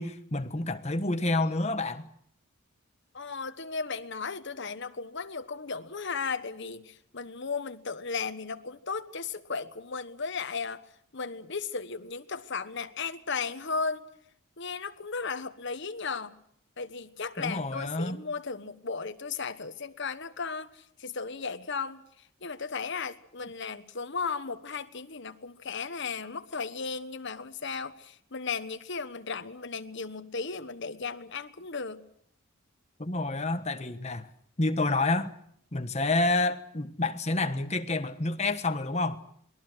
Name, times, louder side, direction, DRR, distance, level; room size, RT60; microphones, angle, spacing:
voice 1, 0.0-2.1 17.4-18.2 33.0-34.3 34.6-35.3 35.7-39.2, left 2 dB, 30° left, 1.3 m, -28 dB
voice 2, 3.1-10.8 11.1-14.1 14.6-16.4 16.8-32.0, left 5 dB, 55° left, 1.3 m, -35 dB
27.5 x 21.0 x 6.3 m
head